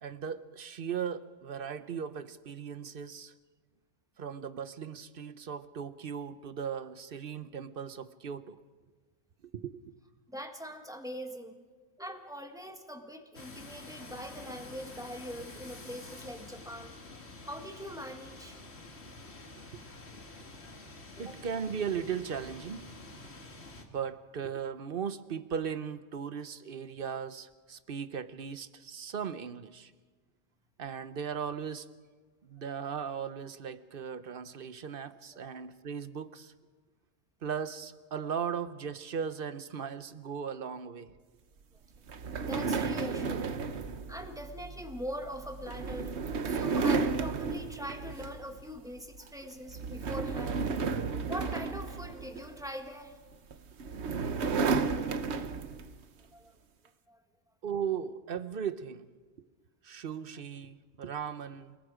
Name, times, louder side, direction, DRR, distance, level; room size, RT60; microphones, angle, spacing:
voice 1, 0.0-3.3 4.2-8.6 9.5-9.8 21.2-22.9 23.9-29.9 30.8-31.9 32.4-36.5 37.4-41.1 49.2-49.3 57.6-59.1 59.8-61.8, right 7 dB, 55° right, 13 dB, 1.0 m, -37 dB
voice 2, 10.3-11.6 12.0-16.9 17.4-18.6 21.3-21.4 42.4-43.6 44.1-46.1 46.5-50.6 51.3-53.2 56.3-56.5 57.1-57.2, equal, 5° right, 5 dB, 1.6 m, -42 dB
sound 1, 13.3-23.8, left 2 dB, 70° left, 2.2 m, -48 dB
sound 2, 42.1-48.6 49.0-49.3 49.7-52.7 53.5-56.0, right 4 dB, 75° right, 1.2 m, -33 dB
29.0 x 19.5 x 5.0 m, 1.4 s
omnidirectional pair, 1.1 m